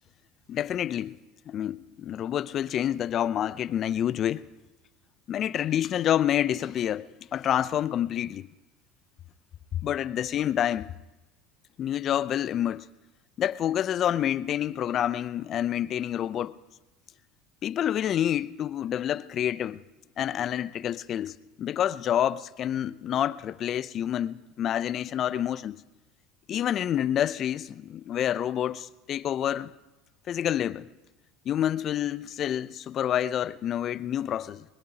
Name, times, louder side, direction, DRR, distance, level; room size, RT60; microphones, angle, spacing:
voice 1, 0.5-1.2 1.5-4.4 5.3-8.5 9.7-10.9 11.8-12.9 13.4-16.5 17.6-19.8 20.2-25.8 26.5-29.7 30.3-30.9 31.5-34.6, left 10 dB, 45° left, 0.5 m, -28 dB
21.0 x 21.0 x 2.9 m
hypercardioid pair, 85°, 0 cm